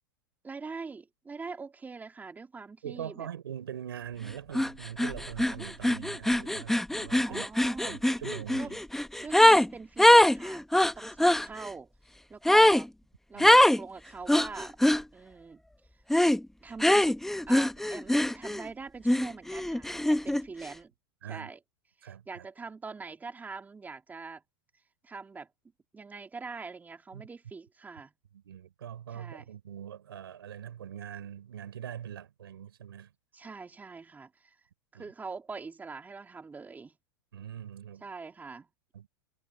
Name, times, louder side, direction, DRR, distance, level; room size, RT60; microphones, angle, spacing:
voice 1, 0.4-3.3 7.2-8.0 8.6-8.7 9.2-11.9 12.3-12.9 13.3-14.8 15.1-15.6 16.6-17.2 17.5-20.9 21.3-21.6 22.0-24.4 25.0-25.5 25.9-28.1 29.1-29.5 33.3-34.5 34.9-37.0 38.0-38.7, right 4 dB, 15° right, 3.2 m, -43 dB
voice 2, 2.8-7.5 7.8-8.8 13.3-13.5 21.2-21.5 22.0-22.4 27.1-27.2 28.3-33.1 34.9-35.1 37.3-38.0 38.9-39.1, right 9 dB, 85° right, 4.0 m, -42 dB
sound 1, 4.5-4.7 5.0-9.7 10.0-11.4 12.4-12.8 13.4-13.8 14.3-15.0 16.1-16.4 16.8-18.7 19.0-20.4, left 1 dB, 5° left, 1.1 m, -22 dB
hypercardioid pair, 115°, 12 cm